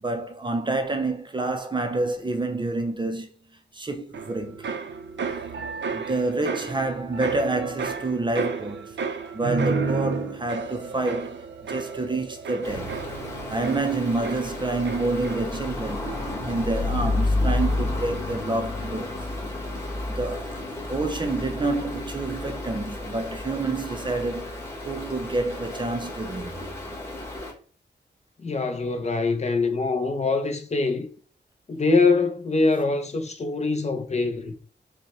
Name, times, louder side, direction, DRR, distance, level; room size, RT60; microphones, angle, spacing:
voice 1, 0.0-3.3 3.7-4.7 5.9-9.0 9.3-12.9 13.5-16.1 16.4-19.3 20.1-20.6 20.9-26.6, right 2 dB, 25° right, 0.5 m, -28 dB
sound 1, 4.1-15.7 16.0-16.5, right 5 dB, 90° right, 0.5 m, -32 dB
Stream, 12.6-27.5, left 2 dB, 15° left, 1.1 m, -31 dB
voice 2, 28.4-31.1 31.7-34.6, left 3 dB, 40° left, 0.5 m, -24 dB
5.2 x 2.1 x 2.9 m
wide cardioid pair, 150°, 18 cm